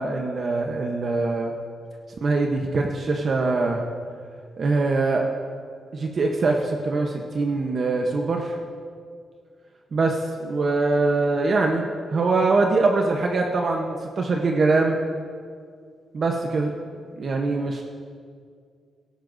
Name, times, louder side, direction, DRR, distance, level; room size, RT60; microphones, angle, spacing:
voice 1, 0.0-1.5 2.2-3.8 4.6-5.3 5.9-8.5 9.9-11.8 12.1-15.0 16.1-16.7 17.2-17.8, right 3 dB, 45° right, 2 dB, 0.9 m, -23 dB
17.0 x 13.5 x 2.6 m, 2.2 s
cardioid pair, 125°, 0 cm